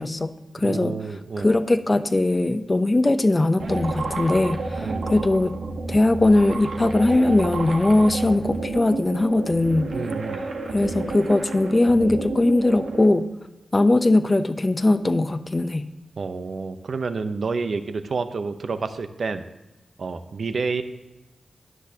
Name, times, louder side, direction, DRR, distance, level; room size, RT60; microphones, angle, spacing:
voice 1, 0.0-1.0 1.4-5.6 5.9-9.9 10.7-13.3 13.7-15.9, left 2 dB, 30° left, 11 dB, 0.7 m, -20 dB
voice 2, 0.6-1.5 4.8-5.1 9.9-10.4 16.2-19.4 20.0-20.8, right 4 dB, 70° right, 9 dB, 0.7 m, -29 dB
sound 1, 3.6-13.1, right 3 dB, 90° right, 1.1 m, -31 dB
12.5 x 10.0 x 2.8 m, 1.0 s
cardioid pair, 50°, 0 cm